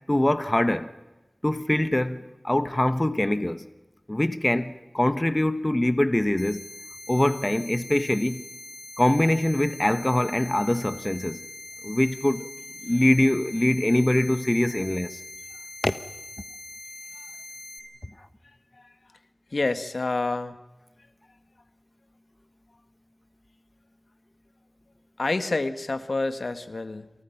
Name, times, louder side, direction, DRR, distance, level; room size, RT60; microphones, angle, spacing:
voice 1, 0.1-0.9 1.4-3.7 4.1-6.7 7.1-8.4 9.0-11.4 11.8-12.5 12.8-15.2 15.8-16.0, left 1 dB, 25° left, 1.3 m, -23 dB
sound 1, 6.4-17.8, left 2 dB, 40° left, 6.5 m, -42 dB
voice 2, 19.5-20.6 25.2-27.1, left 3 dB, 70° left, 1.6 m, -28 dB
29.5 x 27.5 x 5.9 m
wide cardioid pair, 45°, 0 cm